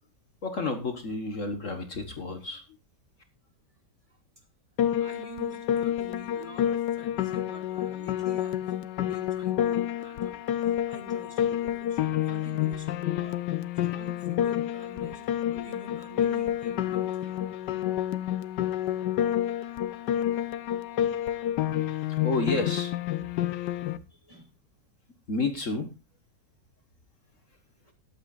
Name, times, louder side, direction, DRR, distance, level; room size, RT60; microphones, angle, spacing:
voice 1, 0.4-2.6 22.2-22.9 25.3-25.9, left 3 dB, 50° left, 5 dB, 1.7 m, -30 dB
Piano, 4.8-24.0, left 11 dB, 85° left, 1.4 m, -29 dB
voice 2, 5.0-8.6 9.0-13.4 13.7-17.5 19.8-20.5 21.0-21.5 21.8-21.9 23.2-23.3 24.3-24.4, equal, 20° right, 2 dB, 2.6 m, -47 dB
20.5 x 8.9 x 2.5 m, 0.28 s
omnidirectional pair, 1.8 m